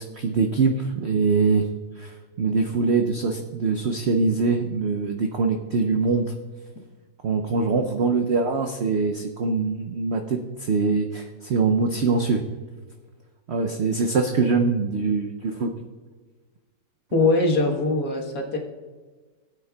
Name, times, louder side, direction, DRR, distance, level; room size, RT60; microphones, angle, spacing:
voice 1, 0.0-1.7 2.0-6.3 7.2-12.4 13.5-15.7, right 4 dB, 75° right, 5 dB, 0.6 m, -23 dB
voice 2, 17.1-18.6, left 2 dB, 65° left, 0 dB, 1.8 m, -22 dB
17.5 x 8.3 x 2.3 m, 1.4 s
omnidirectional pair, 1.9 m